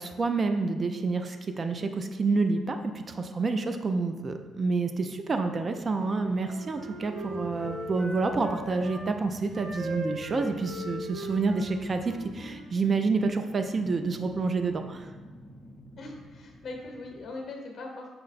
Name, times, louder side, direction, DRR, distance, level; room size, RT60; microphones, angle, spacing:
voice 1, 0.0-15.1, right 3 dB, 40° right, 7 dB, 0.3 m, -28 dB
sound 1, 2.9-3.6 5.3-17.3, left 1 dB, 25° left, 0.5 m, -50 dB
Wind instrument woodwind instrument, 5.9-9.0 9.5-12.7, right 1 dB, 85° right, 0.8 m, -39 dB
voice 2, 16.0-18.1, left 2 dB, 50° left, 1 dB, 0.8 m, -40 dB
5.5 x 2.1 x 3.9 m, 1.3 s
cardioid pair, 90°, 0 cm